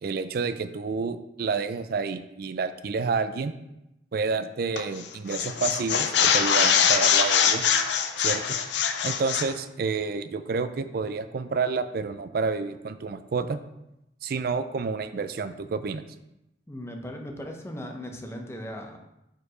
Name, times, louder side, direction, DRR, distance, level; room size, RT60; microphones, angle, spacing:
voice 1, 0.0-3.5 4.1-7.6 8.2-8.6 9.0-13.6 14.2-16.0, right 4 dB, 55° right, 12 dB, 0.4 m, -29 dB
sound 1, 4.8-5.0 5.3-9.5, left 7 dB, 75° left, 0.5 m, -23 dB
voice 2, 16.7-19.0, equal, 15° left, 3 dB, 0.7 m, -38 dB
4.6 x 4.6 x 4.9 m, 0.88 s
head